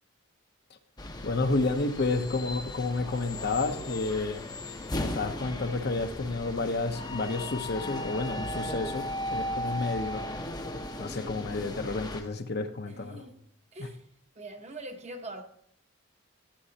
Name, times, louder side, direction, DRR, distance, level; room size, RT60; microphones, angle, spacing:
sound 1, 1.0-12.2, left 1 dB, 20° left, 0.7 m, -36 dB
voice 1, 1.2-4.4 4.9-10.2 11.0-13.2, left 3 dB, 50° left, 0.7 m, -30 dB
voice 2, 12.9-14.1 14.3-15.4, right 2 dB, 30° right, 0.9 m, -43 dB
13.0 x 8.5 x 2.8 m
head